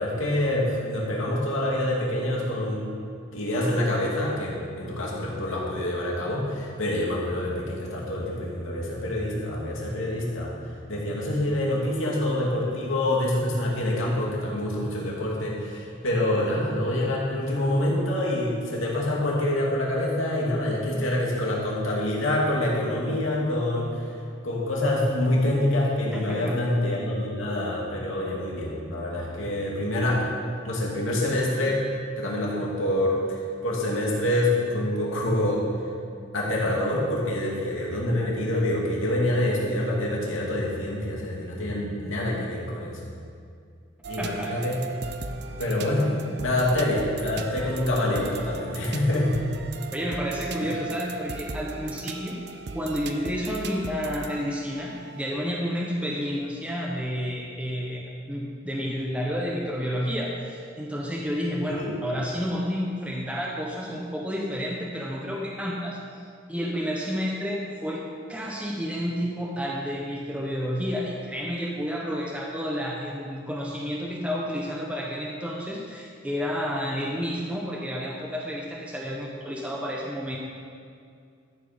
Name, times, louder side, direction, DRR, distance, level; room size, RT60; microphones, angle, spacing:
voice 1, 0.0-2.8 3.3-10.6 10.9-24.1 24.4-30.3 30.6-31.8 32.2-35.6 36.3-43.0 44.1-44.8 45.6-49.4 50.6-50.7 61.7-61.9, left 1 dB, 85° left, -3 dB, 2.6 m, -26 dB
voice 2, 26.1-26.6 44.2-44.6 49.9-52.3 52.7-66.0 66.5-68.0 68.3-80.4, equal, 5° right, -3 dB, 1.0 m, -30 dB
sound 1, 44.0-55.2, right 3 dB, 55° right, 0.6 m, -38 dB
13.0 x 7.7 x 5.2 m, 2.3 s
head